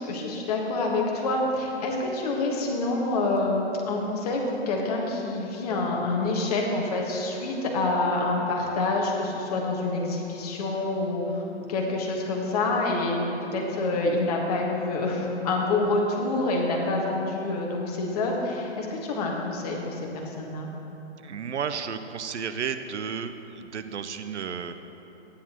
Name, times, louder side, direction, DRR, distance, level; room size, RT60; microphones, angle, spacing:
voice 1, 0.0-13.2 13.5-20.7, left 2 dB, 35° left, -1 dB, 1.5 m, -27 dB
voice 2, 21.2-24.7, right 6 dB, 75° right, 9 dB, 0.7 m, -33 dB
13.0 x 9.8 x 3.0 m, 3.0 s
hypercardioid pair, 150°, 35 cm